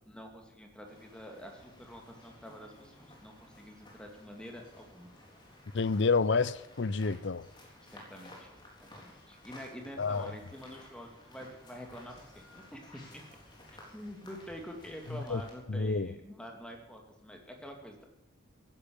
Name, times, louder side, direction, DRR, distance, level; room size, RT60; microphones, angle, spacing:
voice 1, 0.1-5.1 7.8-8.5 8.8-13.2 13.9-18.0, equal, 5° left, 2.4 m, -47 dB
sound 1, 0.8-15.5, left 1 dB, 20° left, 3.8 m, -55 dB
voice 2, 5.7-7.4 10.0-10.3 15.3-15.4 15.7-16.1, left 4 dB, 60° left, 0.6 m, -29 dB
15.5 x 10.0 x 8.8 m
head